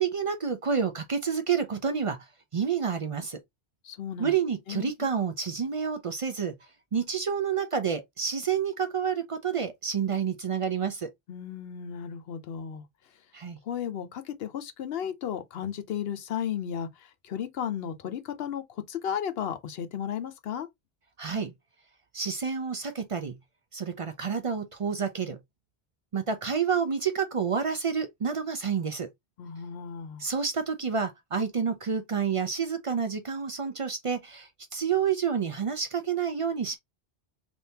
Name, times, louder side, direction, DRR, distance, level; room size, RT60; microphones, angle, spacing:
voice 1, 0.0-2.2 2.5-3.4 4.2-6.5 6.9-11.1 13.3-13.6 21.2-21.5 22.1-23.4 23.7-25.4 26.1-29.1 30.2-36.8, right 6 dB, 50° right, 0.4 m, -29 dB
voice 2, 3.8-4.3 4.7-4.9 11.3-12.8 13.6-20.7 29.4-30.2, left 9 dB, 70° left, 0.8 m, -34 dB
3.4 x 2.7 x 2.7 m
omnidirectional pair, 1.1 m